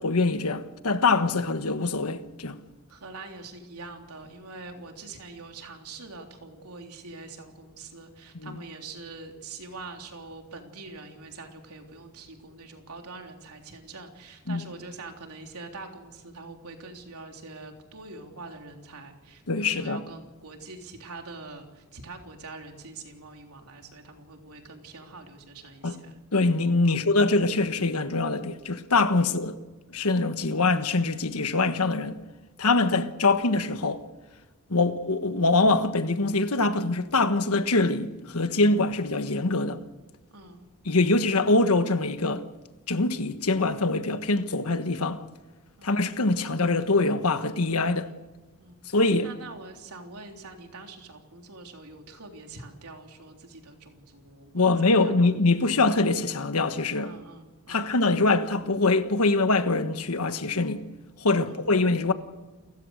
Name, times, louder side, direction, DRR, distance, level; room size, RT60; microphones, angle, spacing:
voice 1, 0.0-2.6 8.4-8.5 14.5-14.6 19.5-20.0 25.8-26.0 26.3-29.5 29.9-32.2 32.6-34.0 34.7-39.8 40.8-42.4 42.9-45.2 45.8-48.1 48.9-49.3 54.5-57.1 57.7-60.8 61.2-62.1, left 3 dB, 80° left, 1.4 m, -24 dB
voice 2, 2.9-26.2 26.9-27.0 29.2-29.3 32.7-32.8 40.3-40.7 45.8-46.0 47.9-48.2 48.6-48.8 49.2-55.3 57.0-57.9 61.4-61.7, right 3 dB, 90° right, 3.5 m, -44 dB
29.5 x 15.5 x 6.6 m
head